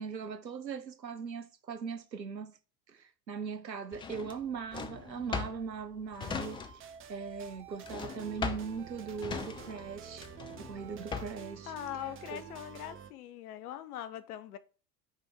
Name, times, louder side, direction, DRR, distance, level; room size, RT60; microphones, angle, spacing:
voice 1, 0.0-2.6 2.9-10.3 10.6-11.7 12.3-12.4, right 6 dB, 90° right, 0.6 m, -40 dB
Drawer open or close, 3.9-7.0 7.3-11.5, left 5 dB, 10° left, 0.3 m, -39 dB
sound 1, 6.2-13.1, right 8 dB, 25° right, 0.7 m, -49 dB
voice 2, 11.6-14.6, left 11 dB, 60° left, 0.7 m, -41 dB
8.1 x 3.4 x 5.4 m
figure-of-eight pair, 70°, 50 cm